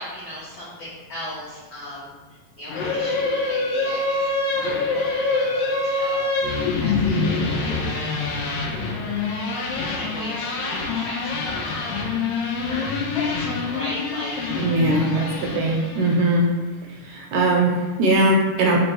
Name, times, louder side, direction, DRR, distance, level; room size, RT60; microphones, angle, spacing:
voice 1, 0.0-4.4 4.9-8.4 9.9-11.9 12.7-14.5, left 1 dB, 75° left, -9 dB, 1.1 m, -37 dB
sound 1, 2.7-16.3, left 3 dB, 90° left, 1.5 m, -25 dB
voice 2, 14.6-16.5 17.0-18.8, right 1 dB, 80° right, 0 dB, 1.9 m, -20 dB
4.2 x 3.4 x 3.1 m, 1.3 s
omnidirectional pair, 3.6 m